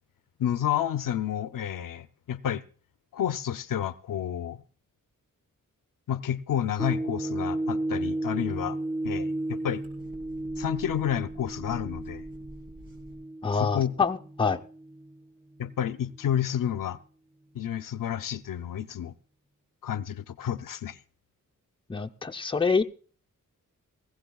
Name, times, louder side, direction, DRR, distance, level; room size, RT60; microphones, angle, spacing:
voice 1, 0.4-2.6 3.1-4.6 6.1-8.8 9.0-9.8 10.6-12.2 13.5-14.0 15.6-17.0 17.5-19.1 19.8-21.0, left 10 dB, 75° left, 0.6 m, -30 dB
sound 1, 6.8-15.2 15.7-15.8, right 1 dB, 15° right, 2.7 m, -34 dB
sound 2, 8.0-13.2, right 1 dB, 90° right, 5.1 m, -50 dB
voice 2, 13.4-14.6 21.9-22.8, left 5 dB, 15° left, 0.6 m, -26 dB
19.5 x 16.0 x 2.3 m
wide cardioid pair, 120°, 33 cm